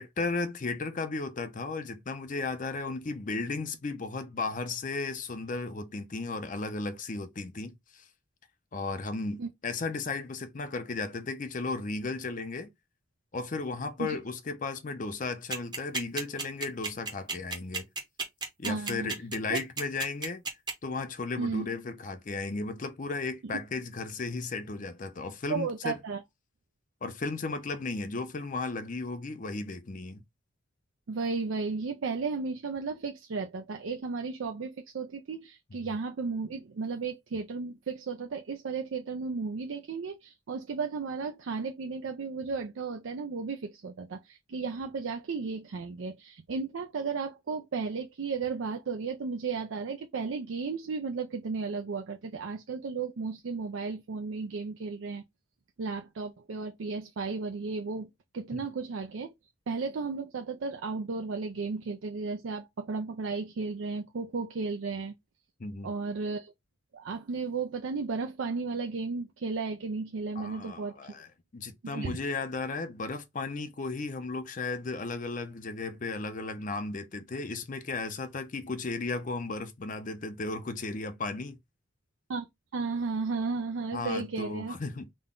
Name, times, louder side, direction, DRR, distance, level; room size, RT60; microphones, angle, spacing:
voice 1, 0.0-8.1 8.7-12.7 13.3-17.9 18.6-20.4 20.8-26.0 27.0-30.2 35.8-35.9 58.5-58.6 65.6-65.9 70.4-81.6 83.9-85.1, left 3 dB, 40° left, 0.5 m, -35 dB
sound 1, 15.5-20.7, right 4 dB, 20° right, 0.8 m, -32 dB
voice 2, 18.6-19.1 19.5-19.6 21.4-21.7 25.5-26.2 31.1-55.2 55.8-59.3 59.7-65.1 65.8-66.5 66.9-71.2 71.9-72.2 82.3-82.5 82.7-84.8, right 4 dB, 70° right, 0.4 m, -34 dB
3.8 x 2.2 x 3.7 m
head